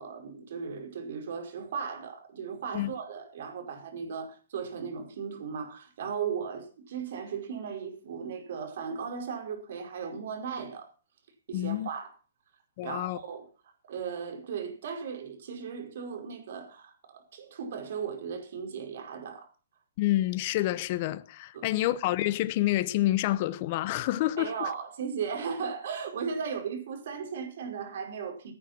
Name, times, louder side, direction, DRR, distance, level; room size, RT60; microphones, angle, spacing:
voice 1, 0.0-10.9 11.5-12.2 12.8-13.5 13.8-19.5 21.5-21.7 24.4-28.5, right 6 dB, 65° right, 5.1 m, -36 dB
voice 2, 11.5-11.9 12.8-13.2 20.0-24.7, left 15 dB, 40° left, 0.8 m, -28 dB
17.5 x 8.8 x 6.0 m
hypercardioid pair, 145°, 0 cm